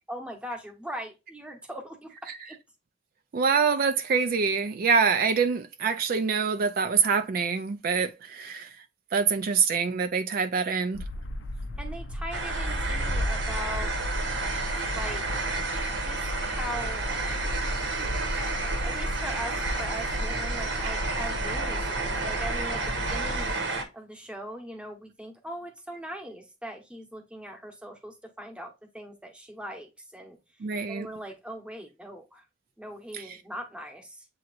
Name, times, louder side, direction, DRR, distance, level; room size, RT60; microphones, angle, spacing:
voice 1, 0.1-2.6 11.8-13.9 14.9-15.2 15.9-17.1 18.8-23.5 23.9-30.4 30.9-32.4 32.8-34.3, equal, 5° right, 1.0 m, -40 dB
voice 2, 3.3-8.8 9.1-11.0 30.6-31.1 33.1-33.4, right 5 dB, 50° right, 0.4 m, -25 dB
sound 1, 10.9-23.5, left 1 dB, 80° left, 0.5 m, -35 dB
sound 2, 12.3-23.8, right 3 dB, 80° right, 1.2 m, -31 dB
7.7 x 2.9 x 2.4 m
head